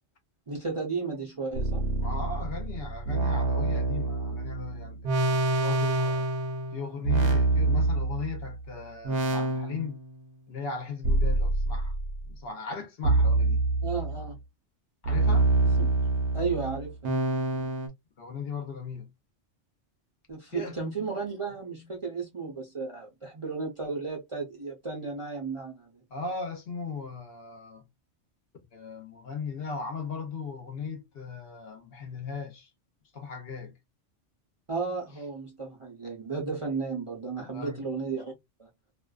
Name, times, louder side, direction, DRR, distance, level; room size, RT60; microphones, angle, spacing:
voice 1, 0.5-1.9 13.8-14.4 15.8-15.9 16.3-17.2 20.3-25.9 34.7-38.3 38.6-38.7, right 4 dB, 35° right, 0.5 m, -34 dB
sound 1, 1.6-8.6 9.0-10.2 11.0-12.2 13.0-14.3 15.0-17.9, right 2 dB, 60° right, 0.9 m, -26 dB
voice 2, 2.0-6.3 6.7-10.0 10.5-12.0 12.3-13.7 15.0-15.5 18.2-19.1 20.5-20.8 26.1-27.9 28.7-32.7 33.1-33.8 37.4-37.8, left 4 dB, 60° left, 0.9 m, -37 dB
2.5 x 2.2 x 2.2 m
omnidirectional pair, 1.2 m